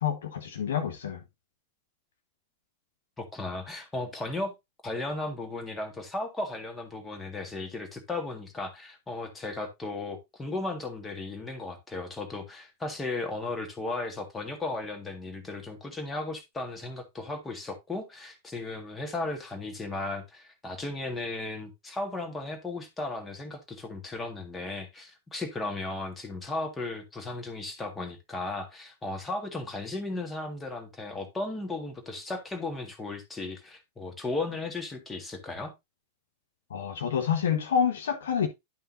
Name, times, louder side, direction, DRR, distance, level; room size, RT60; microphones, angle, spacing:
voice 1, 0.0-1.2 36.7-38.5, left 8 dB, 60° left, 1.2 m, -28 dB
voice 2, 3.2-4.5 4.8-35.7, left 2 dB, 15° left, 1.8 m, -35 dB
11.0 x 5.6 x 2.6 m
figure-of-eight pair, 90°, 0 cm